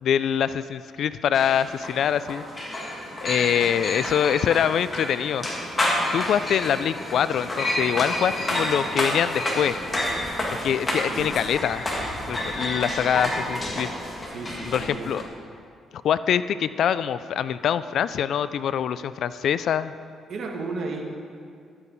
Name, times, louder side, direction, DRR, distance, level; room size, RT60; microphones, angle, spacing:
voice 1, 0.0-2.4 3.2-5.5 6.1-9.8 10.6-11.9 12.3-13.9 14.7-15.2 16.0-19.9, left 9 dB, 70° left, 15 dB, 0.3 m, -24 dB
sound 1, 1.3-15.2, left 1 dB, 25° left, 1.9 m, -29 dB
voice 2, 8.3-8.6 11.1-11.4 14.3-15.1 20.3-21.0, right 3 dB, 60° right, 1 dB, 1.6 m, -34 dB
12.5 x 8.3 x 4.0 m, 2.3 s
cardioid pair, 90°, 0 cm